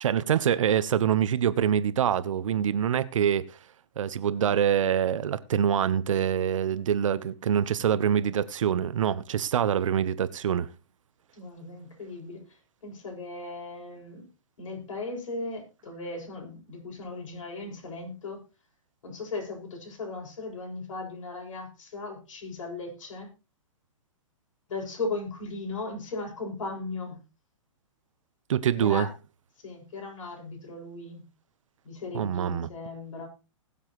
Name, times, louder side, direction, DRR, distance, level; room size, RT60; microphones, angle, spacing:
voice 1, 0.0-3.5 4.0-10.7 28.5-29.1 32.1-32.7, right 9 dB, 70° right, 1.1 m, -25 dB
voice 2, 11.3-14.3 14.6-18.4 19.0-23.3 24.7-27.2 28.8-29.1 29.6-31.2 31.8-33.3, left 3 dB, 70° left, 7.2 m, -37 dB
20.5 x 7.3 x 3.2 m
hypercardioid pair, 135°, 17 cm